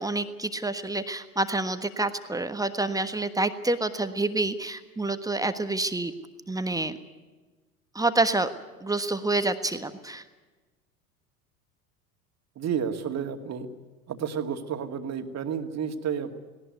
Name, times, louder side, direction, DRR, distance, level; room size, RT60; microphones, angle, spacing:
voice 1, 0.0-6.1 6.5-7.0 7.9-8.5 8.8-10.2, right 2 dB, 10° right, 9 dB, 1.4 m, -28 dB
voice 2, 12.6-13.7 14.1-16.4, right 7 dB, 35° right, 6 dB, 2.3 m, -31 dB
19.0 x 18.5 x 9.5 m, 1.2 s
figure-of-eight pair, 75°, 45 cm